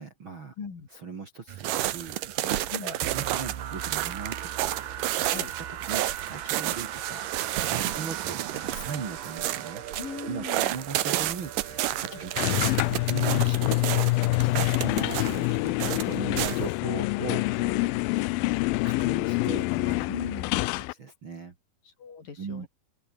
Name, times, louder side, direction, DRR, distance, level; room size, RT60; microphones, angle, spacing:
voice 1, 0.0-0.5 0.9-4.8 5.2-9.8 10.2-12.7 13.1-13.8 14.4-20.1 20.6-21.5 22.4-22.7, right 5 dB, 35° right, 2.5 m, -39 dB
voice 2, 0.6-0.9 2.7-3.0 5.3-5.5 7.7-7.9 10.0-10.8 12.1-12.2 20.1-20.5 21.9-22.7, left 5 dB, 60° left, 6.1 m, -38 dB
sound 1, 1.5-16.7, right 14 dB, 70° right, 2.4 m, -31 dB
sound 2, 3.0-14.8, right 9 dB, 85° right, 4.5 m, -40 dB
sound 3, 12.4-20.9, left 22 dB, 85° left, 2.1 m, -26 dB
open air
omnidirectional pair, 4.6 m